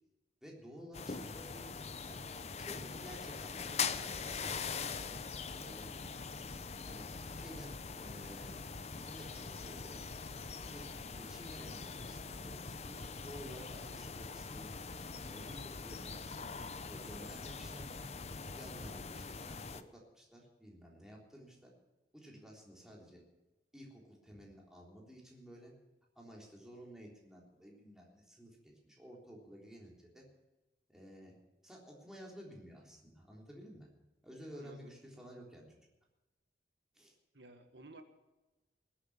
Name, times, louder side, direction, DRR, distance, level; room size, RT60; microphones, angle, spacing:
voice 1, 0.4-1.7 2.0-2.2 2.6-4.6 5.1-5.2 5.5-6.0 6.6-7.1 7.3-10.0 10.5-10.8 11.1-14.8 15.2-18.1 18.5-21.7 22.1-23.2 23.7-25.7 26.2-30.2 30.9-31.4 31.6-33.9 34.2-35.7 36.9-37.1, equal, 5° right, -2 dB, 3.5 m, -53 dB
sound 1, 0.9-19.8, left 5 dB, 35° left, 0.7 m, -43 dB
voice 2, 34.5-34.9 37.3-38.0, right 2 dB, 80° right, 7 dB, 1.5 m, -54 dB
19.5 x 8.6 x 7.1 m, 1.1 s
head